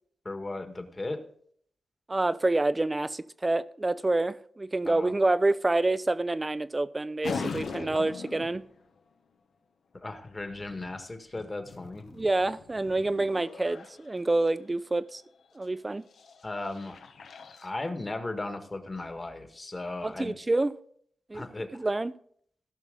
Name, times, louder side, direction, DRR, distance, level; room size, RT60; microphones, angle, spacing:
voice 1, 0.2-1.2 4.8-5.1 10.0-12.1 16.4-17.0 17.6-20.3 21.3-21.9, left 2 dB, 30° left, 1.6 m, -36 dB
voice 2, 2.1-8.6 12.1-15.2 15.6-16.0 20.0-20.8 21.3-21.4 21.7-22.1, right 2 dB, 25° right, 0.5 m, -27 dB
sound 1, 7.2-8.8 10.3-14.6 15.4-15.6 16.0-17.7, left 5 dB, 80° left, 1.0 m, -41 dB
16.5 x 5.9 x 3.9 m
cardioid pair, 70°, 0 cm